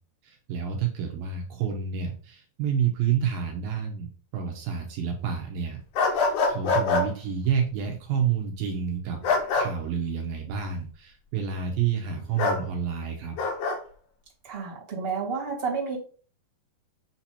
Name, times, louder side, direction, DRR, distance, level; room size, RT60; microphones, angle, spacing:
voice 1, 0.2-5.8 6.1-9.2 9.5-13.4, right 7 dB, 75° right, 2 dB, 2.5 m, -29 dB
sound 1, 5.9-7.0 9.2-9.7 12.4-12.6 13.4-13.8, left 3 dB, 70° left, 1.5 m, -24 dB
voice 2, 14.4-16.0, right 5 dB, 20° right, -4 dB, 1.8 m, -30 dB
7.9 x 2.9 x 4.3 m, 0.41 s
omnidirectional pair, 4.3 m